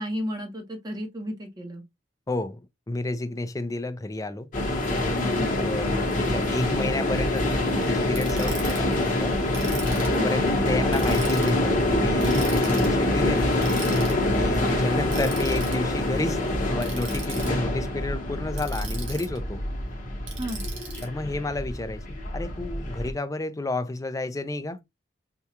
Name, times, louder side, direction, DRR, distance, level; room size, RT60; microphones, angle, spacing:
voice 1, 0.0-1.8 5.3-5.6 10.1-10.6 14.3-15.2 15.7-15.8 20.4-20.6, equal, 20° right, 1.0 m, -33 dB
voice 2, 2.3-2.6 2.9-4.5 5.0-9.4 10.1-13.5 14.3-19.6 21.0-24.8, left 2 dB, 20° left, 0.4 m, -31 dB
sound 1, 4.5-23.1, left 1 dB, 45° left, 1.0 m, -25 dB
Ratchet pawl, 8.1-8.8 9.5-10.2 10.9-11.5 12.2-12.9 13.6-14.1 15.1-15.7 16.8-17.5 18.5-19.4 20.3-21.0, right 5 dB, 85° right, 1.9 m, -39 dB
4.5 x 2.3 x 2.8 m
head